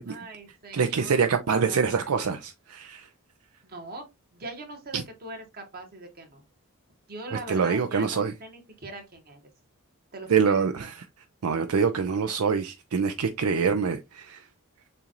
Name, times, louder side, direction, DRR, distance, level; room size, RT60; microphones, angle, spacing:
voice 1, 0.1-1.2 1.5-2.1 3.6-4.1 4.3-6.4 7.1-9.4 10.1-10.9, right 2 dB, 45° right, 1.4 m, -41 dB
voice 2, 0.7-3.1 4.9-5.0 7.5-8.3 10.3-10.9 11.4-14.4, right 6 dB, 70° right, 0.5 m, -25 dB
6.8 x 2.5 x 3.0 m
head